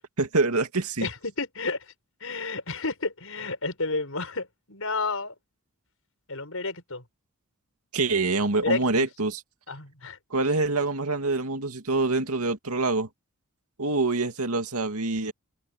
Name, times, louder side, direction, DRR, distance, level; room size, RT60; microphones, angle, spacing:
voice 1, 0.2-1.1 7.9-9.4 10.3-13.1 13.8-15.3, right 3 dB, 90° right, 2.5 m, -25 dB
voice 2, 1.0-1.9 2.2-5.3 6.3-7.0 8.6-9.1 9.7-10.2, left 3 dB, 70° left, 5.6 m, -31 dB
head